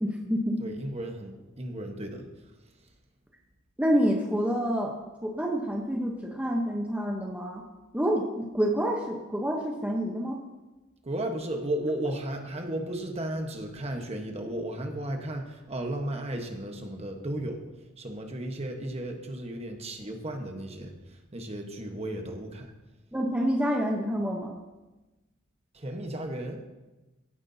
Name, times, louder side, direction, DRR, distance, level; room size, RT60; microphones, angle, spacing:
voice 1, 0.0-0.6 3.8-4.9 5.2-7.6 7.9-10.4 23.1-24.5, equal, 5° right, 0 dB, 0.9 m, -28 dB
voice 2, 0.6-2.3 11.0-17.6 18.0-22.7 25.7-26.6, right 1 dB, 30° right, 3 dB, 1.2 m, -34 dB
16.0 x 9.6 x 2.8 m, 1.1 s
head